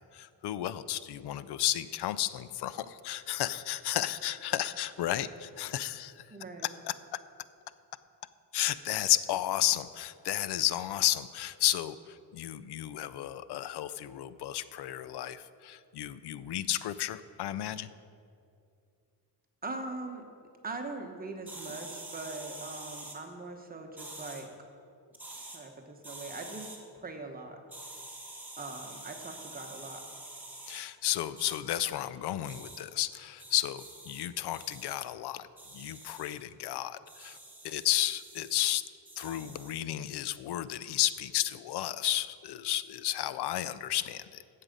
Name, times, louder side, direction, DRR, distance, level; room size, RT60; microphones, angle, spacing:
voice 1, 0.0-6.3 6.8-6.9 8.5-17.9 30.7-35.5 35.7-37.4 37.6-38.8 39.2-44.4, left 13 dB, 70° left, 15 dB, 0.5 m, -32 dB
voice 2, 6.3-6.7 19.6-20.2 20.6-24.5 25.5-26.7 27.0-27.6 28.6-30.0, right 3 dB, 20° right, 4 dB, 1.0 m, -41 dB
sound 1, 21.5-23.2 24.0-24.4 25.1-25.6 26.0-26.8 27.7-30.8 31.4-31.6 32.5-32.8 33.4-34.2 34.5-35.0 35.6-36.3 37.1-38.7 39.1-39.8, right 2 dB, 5° right, 1.4 m, -46 dB
14.5 x 7.5 x 5.2 m, 2.5 s
wide cardioid pair, 175°, 41 cm